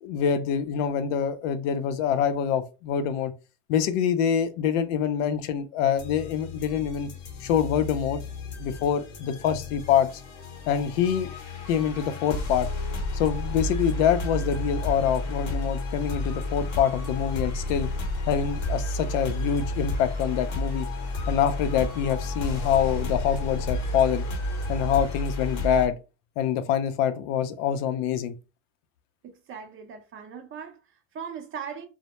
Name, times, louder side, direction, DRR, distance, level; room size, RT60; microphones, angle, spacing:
voice 1, 0.0-3.3 3.7-7.1 7.4-8.2 8.6-10.2 10.7-11.3 11.7-12.7 13.1-17.9 18.3-20.9 21.3-24.3 24.7-25.9 26.4-28.3, left 8 dB, 70° left, 0.5 m, -25 dB
Free Weird Dark Spooky Music, 6.0-25.9, left 2 dB, 45° left, 0.8 m, -31 dB
voice 2, 29.2-31.9, right 7 dB, 35° right, 0.5 m, -39 dB
2.0 x 2.0 x 2.9 m
supercardioid pair, 110°, 38 cm